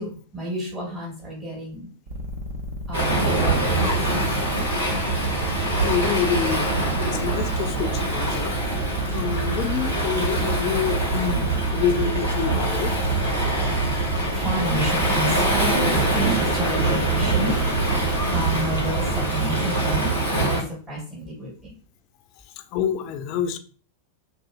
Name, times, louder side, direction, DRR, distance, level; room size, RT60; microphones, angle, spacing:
voice 1, 0.0-1.9 2.9-4.3 14.3-17.5 18.3-21.7, equal, 15° right, -3 dB, 1.1 m, -30 dB
sound 1, 2.1-19.2, left 1 dB, 50° right, 0.5 m, -33 dB
Waves surf, 2.9-20.6, right 2 dB, 80° right, 1.4 m, -24 dB
voice 2, 5.8-6.7 7.0-8.6 9.1-12.9 22.7-23.6, left 7 dB, 40° left, 8 dB, 0.3 m, -27 dB
2.6 x 2.5 x 2.3 m, 0.40 s
figure-of-eight pair, 90°, 0 cm